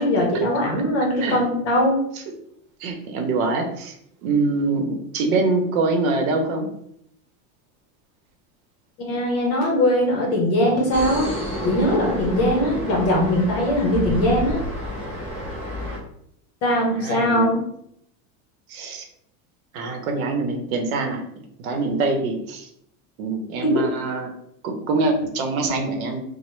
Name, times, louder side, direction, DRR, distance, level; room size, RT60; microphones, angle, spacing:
voice 1, 0.0-1.9 9.0-11.3 11.6-14.6 16.6-17.6 23.6-23.7, left 1 dB, 35° left, -1 dB, 0.8 m, -20 dB
voice 2, 2.8-4.0 4.2-6.7 17.0-17.5 18.7-19.1 19.7-21.2 21.6-22.7 23.2-24.3 24.6-26.2, right 3 dB, 80° right, 4 dB, 0.8 m, -24 dB
sound 1, 10.9-16.0, left 1 dB, 5° right, 0.5 m, -30 dB
3.0 x 2.1 x 3.1 m, 0.71 s
supercardioid pair, 170°, 42 cm